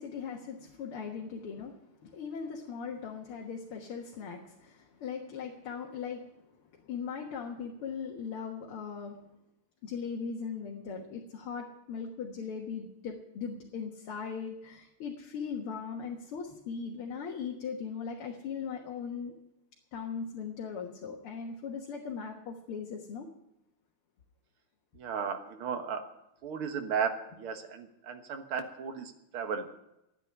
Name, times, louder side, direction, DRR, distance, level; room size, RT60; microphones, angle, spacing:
voice 1, 0.0-6.3 6.7-9.2 9.8-19.4 19.9-23.3, left 6 dB, 85° left, 0 dB, 2.4 m, -39 dB
voice 2, 24.9-26.1 26.4-29.8, right 6 dB, 75° right, 6 dB, 2.3 m, -35 dB
13.0 x 9.0 x 9.9 m, 0.86 s
omnidirectional pair, 2.4 m